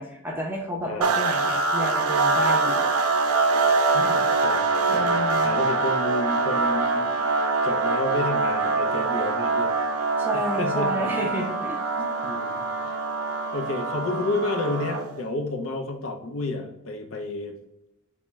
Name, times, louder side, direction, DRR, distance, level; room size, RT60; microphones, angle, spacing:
voice 1, 0.0-2.9 4.9-5.6 10.2-12.1, equal, 10° right, -1 dB, 0.5 m, -31 dB
voice 2, 0.8-1.2 3.9-9.7 10.3-11.3 12.2-13.0 13.5-17.5, left 2 dB, 65° left, 3 dB, 0.5 m, -31 dB
sound 1, 1.0-15.2, right 3 dB, 85° right, 0.5 m, -24 dB
4.2 x 2.1 x 3.4 m, 0.85 s
head